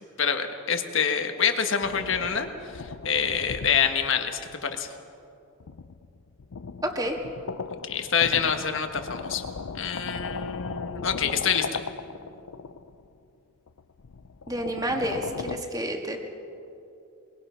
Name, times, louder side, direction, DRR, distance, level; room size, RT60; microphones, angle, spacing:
voice 1, 0.2-4.9 7.8-9.4 9.7-11.8, left 7 dB, 60° left, 6 dB, 1.5 m, -26 dB
sound 1, 1.8-4.9 5.6-13.1 13.7-15.6, left 5 dB, 90° left, 0.6 m, -38 dB
voice 2, 6.8-7.2 14.5-16.2, right 1 dB, 15° right, 2 dB, 1.9 m, -29 dB
23.0 x 23.0 x 5.7 m, 2.7 s
head